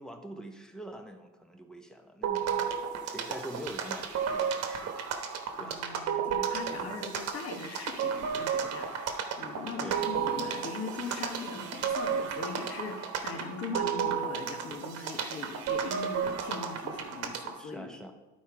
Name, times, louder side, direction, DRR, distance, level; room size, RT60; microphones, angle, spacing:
voice 1, 0.0-5.1 5.6-5.8 6.8-7.1 9.8-10.0 11.5-11.7 17.6-18.1, right 1 dB, ahead, 5 dB, 0.8 m, -45 dB
sound 1, 2.2-17.6, right 7 dB, 55° right, 1.1 m, -33 dB
voice 2, 5.6-17.9, left 4 dB, 55° left, 4 dB, 1.3 m, -40 dB
11.5 x 4.4 x 4.8 m, 1.1 s
cardioid pair, 145°, 29 cm